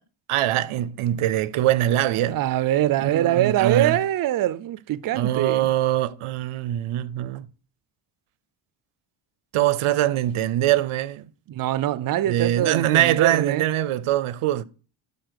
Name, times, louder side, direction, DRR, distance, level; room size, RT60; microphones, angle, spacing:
voice 1, 0.3-2.4 3.0-4.0 5.1-7.5 9.5-11.3 12.3-14.6, right 13 dB, 85° right, 0.7 m, -23 dB
voice 2, 2.2-5.7 11.5-13.6, right 13 dB, 45° right, 0.4 m, -23 dB
12.0 x 4.2 x 6.4 m
wide cardioid pair, 165°, 49 cm